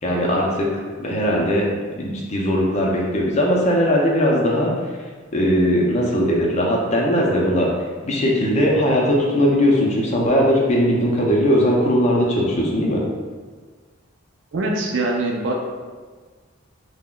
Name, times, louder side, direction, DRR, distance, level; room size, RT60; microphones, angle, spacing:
voice 1, 0.0-1.7 2.0-4.7 5.3-7.7 8.0-13.0, equal, 35° left, -2 dB, 0.5 m, -19 dB
voice 2, 14.5-15.5, right 2 dB, 65° right, 0 dB, 0.4 m, -23 dB
3.6 x 2.1 x 2.2 m, 1.5 s
head